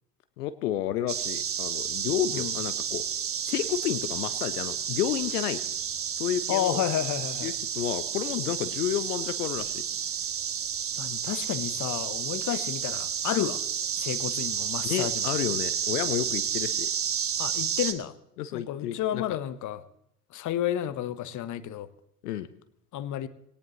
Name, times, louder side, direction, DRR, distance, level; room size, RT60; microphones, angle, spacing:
voice 1, 0.4-3.0 3.4-5.6 6.2-6.8 7.4-9.8 14.8-16.9 18.4-19.2 22.2-22.5, left 11 dB, 70° left, 14 dB, 0.8 m, -31 dB
sound 1, 1.1-17.9, right 8 dB, 30° right, 1.3 m, -31 dB
voice 2, 6.5-7.5 11.0-13.6 14.0-15.3 17.4-18.1 18.5-19.8 20.3-21.9 22.9-23.3, left 11 dB, 40° left, 16 dB, 1.0 m, -31 dB
20.0 x 18.0 x 3.0 m, 0.77 s
figure-of-eight pair, 65°, 48 cm